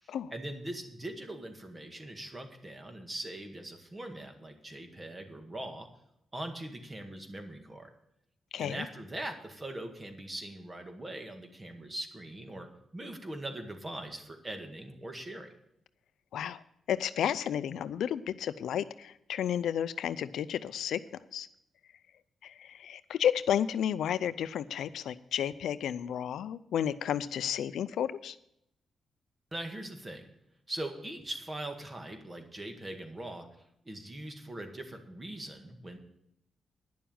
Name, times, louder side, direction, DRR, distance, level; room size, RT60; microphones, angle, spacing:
voice 1, 0.0-5.9 6.3-7.9 8.6-12.7 12.9-15.5 29.5-30.3 30.7-33.5 33.9-36.0, right 1 dB, 25° right, 5 dB, 1.9 m, -41 dB
voice 2, 8.5-8.9 16.3-16.6 16.9-21.0 21.3-21.5 22.4-28.4, left 9 dB, 85° left, 14 dB, 0.5 m, -32 dB
10.5 x 7.0 x 8.8 m, 0.78 s
cardioid pair, 85°, 0 cm